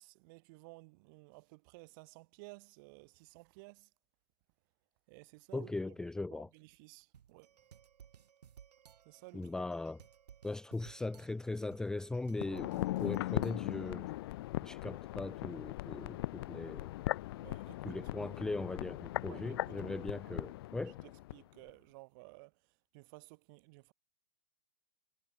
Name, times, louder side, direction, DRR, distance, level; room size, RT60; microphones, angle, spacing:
voice 1, 0.0-3.9 5.1-6.0 6.3-7.5 9.0-9.5 17.4-18.0 18.2-18.3 19.2-20.4 21.0-23.9, right 28 dB, 30° right, 2.9 m, -56 dB
voice 2, 5.5-6.5 9.3-10.0 10.4-14.1 14.6-16.9 17.8-21.0, left 2 dB, 5° left, 0.9 m, -39 dB
sound 1, 7.1-14.0, right 8 dB, 75° right, 6.4 m, -59 dB
sound 2, 12.3-21.4 21.7-21.8, left 17 dB, 35° left, 1.0 m, -39 dB
hypercardioid pair, 165°, 21 cm